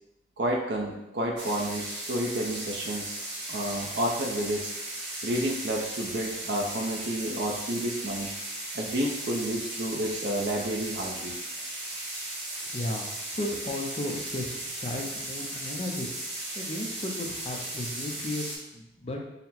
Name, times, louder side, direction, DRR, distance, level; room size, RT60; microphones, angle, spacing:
voice 1, 0.4-3.1 3.5-4.7 5.2-8.3 8.7-11.4, right 1 dB, 70° right, -1 dB, 0.5 m, -30 dB
sound 1, 1.4-18.6, right 1 dB, 90° right, 1.4 m, -36 dB
voice 2, 12.6-18.5 18.7-19.2, left 1 dB, 35° left, 1 dB, 0.5 m, -35 dB
4.1 x 2.0 x 4.1 m, 0.93 s
head